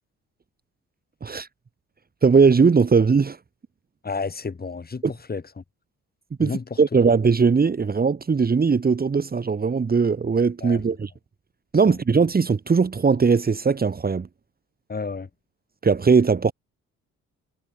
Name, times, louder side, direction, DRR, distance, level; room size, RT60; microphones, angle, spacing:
voice 1, 2.2-3.4 6.4-6.5 6.8-11.1 11.7-14.3 15.8-16.5, right 5 dB, 30° right, 2.0 m, -19 dB
voice 2, 4.0-5.6 6.4-6.8 10.6-10.8 11.9-12.0 14.9-15.3, left 4 dB, 30° left, 7.1 m, -31 dB
cardioid pair, 90°, 30 cm